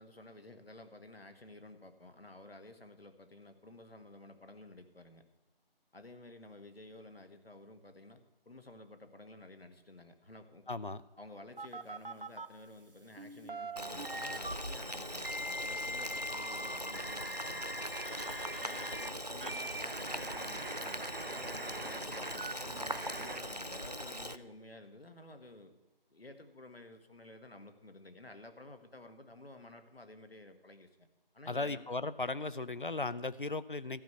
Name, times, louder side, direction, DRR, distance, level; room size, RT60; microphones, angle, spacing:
voice 1, 0.0-5.2 5.9-10.6 11.2-17.7 18.6-25.8 26.1-31.1 31.3-31.8, left 2 dB, 80° left, 7 dB, 1.7 m, -53 dB
voice 2, 10.7-11.0 31.5-34.0, left 3 dB, 60° left, 15 dB, 0.6 m, -36 dB
sound 1, 11.6-12.5 13.2-14.5 15.2-19.1 19.4-23.4, right 1 dB, 65° right, 0.8 m, -42 dB
Boiling, 13.8-24.4, equal, 45° right, 0.4 m, -41 dB
13.5 x 6.2 x 8.1 m, 1.1 s
figure-of-eight pair, 180°, 29 cm